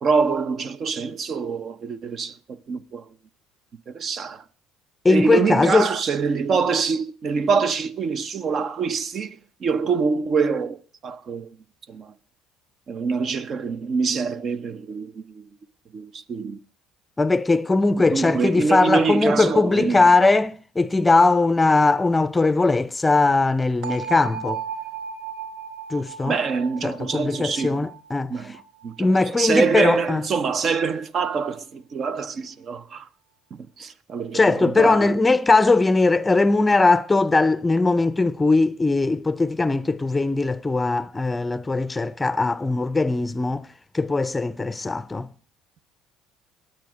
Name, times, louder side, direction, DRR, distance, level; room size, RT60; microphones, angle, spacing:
voice 1, 0.0-3.1 3.9-4.4 5.1-11.5 11.9-12.1 12.9-15.4 15.9-16.6 18.0-20.0 26.3-27.9 28.3-28.6 28.8-33.1 33.5-35.2, right 5 dB, 45° right, 0.8 m, -25 dB
voice 2, 5.0-5.9 17.2-24.6 25.9-26.4 26.8-28.3 29.0-30.2 34.3-43.7 43.9-45.3, left 3 dB, 15° left, 0.6 m, -20 dB
sound 1, 23.8-29.7, right 7 dB, 70° right, 2.8 m, -36 dB
20.5 x 8.0 x 5.0 m
supercardioid pair, 80°, 0 cm